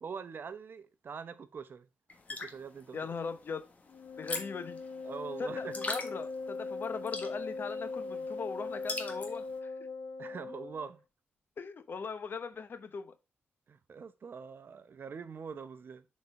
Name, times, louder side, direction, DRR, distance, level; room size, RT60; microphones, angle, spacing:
voice 1, 0.0-1.9 2.3-3.0 5.0-5.7 10.2-11.0 13.7-16.1, right 6 dB, 50° right, 0.8 m, -43 dB
sound 1, 2.1-9.6, left 3 dB, 35° left, 1.4 m, -43 dB
voice 2, 2.9-3.6 4.2-4.8 5.4-9.7 11.6-13.1, left 5 dB, 50° left, 0.8 m, -39 dB
Wind instrument woodwind instrument, 3.9-10.9, left 3 dB, 75° left, 0.9 m, -40 dB
6.7 x 4.2 x 4.6 m
cardioid pair, 90°, 5 cm